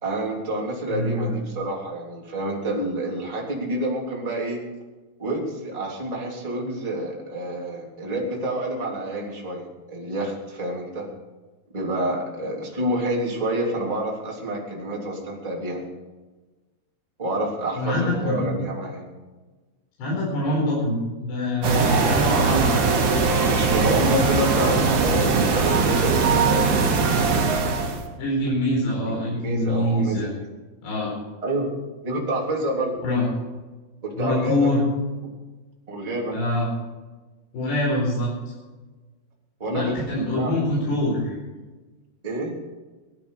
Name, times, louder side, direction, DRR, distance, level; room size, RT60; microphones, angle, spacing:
voice 1, 0.0-4.6 5.2-11.0 11.7-15.8 17.2-19.0 23.5-26.1 29.0-30.3 31.4-31.7 32.0-33.0 34.0-34.7 35.9-36.4 39.6-40.0 40.3-40.5 40.8-40.9 42.2-42.6, right 1 dB, 10° right, -3 dB, 2.7 m, -28 dB
voice 2, 0.9-1.4 17.8-18.5 20.0-22.7 28.2-30.3 30.8-31.1 33.0-33.3 34.1-34.8 36.3-36.7 37.5-38.3 39.7-41.3, left 1 dB, 70° left, -5 dB, 6.7 m, -24 dB
sound 1, 21.6-28.0, right 4 dB, 50° right, 3.2 m, -20 dB
19.0 x 12.5 x 5.0 m, 1.2 s
omnidirectional pair, 5.0 m